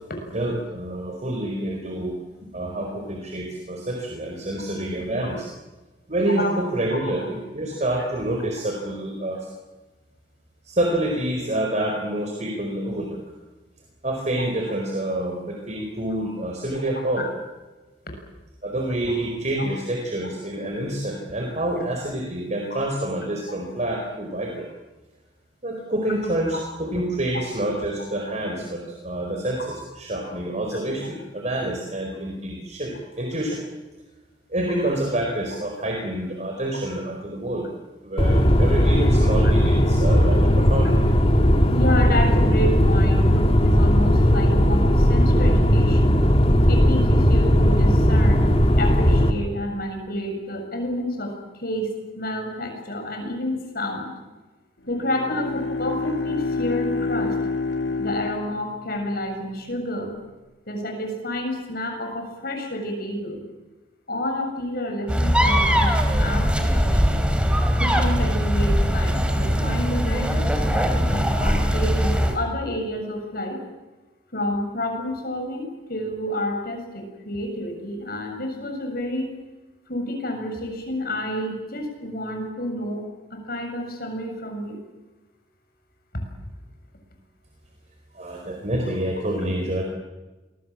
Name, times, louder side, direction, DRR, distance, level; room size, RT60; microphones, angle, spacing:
voice 1, 0.3-2.1 2.4-5.5 6.1-9.5 10.6-13.2 14.0-17.3 18.6-24.7 25.6-29.6 30.0-33.6 34.5-37.7 38.0-41.1 88.1-89.8, right 1 dB, 40° right, 1 dB, 4.5 m, -27 dB
sound 1, 38.2-49.3, equal, 35° left, 2.1 m, -17 dB
voice 2, 41.7-46.2 46.7-48.5 48.8-51.9 52.2-54.1 54.9-57.4 58.0-60.1 60.7-63.4 64.1-67.2 67.8-73.6 74.3-79.3 79.9-83.0 83.3-84.8, left 1 dB, 60° left, 4 dB, 7.2 m, -29 dB
Bowed string instrument, 54.9-59.3, left 3 dB, 85° left, 2.3 m, -28 dB
sound 2, 65.1-72.4, equal, 5° right, 3.2 m, -21 dB
27.0 x 22.5 x 7.5 m, 1.2 s
head